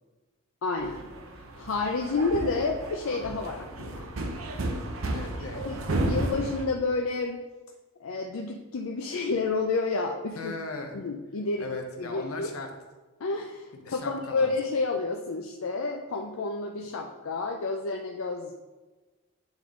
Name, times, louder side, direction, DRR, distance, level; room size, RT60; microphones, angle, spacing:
voice 1, 0.6-1.0 1.6-4.1 5.5-7.4 8.0-10.5 10.9-11.7 12.0-12.5 13.2-18.5, left 3 dB, 75° left, 2 dB, 0.5 m, -30 dB
sound 1, 0.8-6.7, right 2 dB, 75° right, 0.7 m, -33 dB
voice 2, 5.1-5.6 10.3-11.0 11.6-12.7 13.7-14.5, left 3 dB, 90° left, 4 dB, 0.9 m, -38 dB
8.8 x 3.7 x 3.7 m, 1.2 s
head